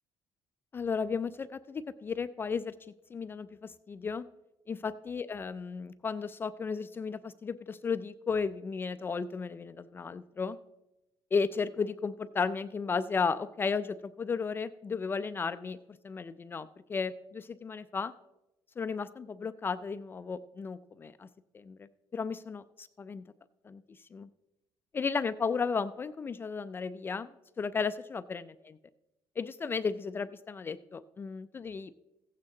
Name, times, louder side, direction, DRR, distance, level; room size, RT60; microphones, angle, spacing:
voice 1, 0.7-2.7 3.1-4.2 4.7-10.6 11.3-15.8 16.0-18.1 18.8-21.3 21.5-23.2 23.6-24.3 24.9-27.3 27.6-28.5 29.4-31.9, left 5 dB, 25° left, 12 dB, 0.3 m, -34 dB
15.0 x 8.5 x 3.8 m, 0.96 s
cardioid pair, 135°, 9 cm